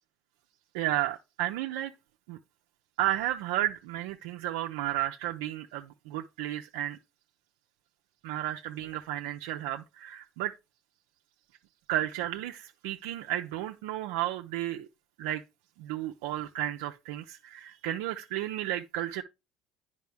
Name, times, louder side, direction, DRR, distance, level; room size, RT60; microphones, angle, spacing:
voice 1, 0.7-1.9 2.3-2.4 3.0-7.0 8.2-10.5 11.9-14.9 15.2-15.4 15.8-19.2, right 13 dB, 80° right, 0.5 m, -33 dB
9.2 x 5.3 x 3.4 m
supercardioid pair, 95°, 0 cm